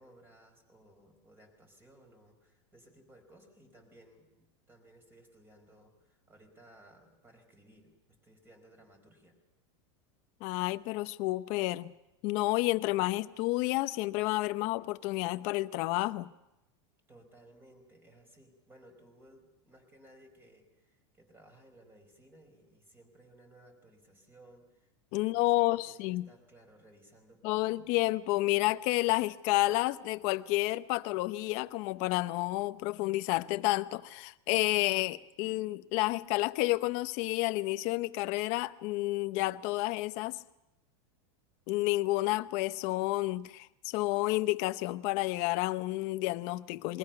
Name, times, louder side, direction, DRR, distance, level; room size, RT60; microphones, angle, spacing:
voice 1, 0.0-9.4 17.1-27.9, right 1 dB, 15° right, 4.7 m, -59 dB
voice 2, 10.4-11.9 12.2-16.3 25.1-26.3 27.4-40.4 41.7-47.0, left 19 dB, 45° left, 0.8 m, -30 dB
27.5 x 22.0 x 5.8 m
supercardioid pair, 155°, 15 cm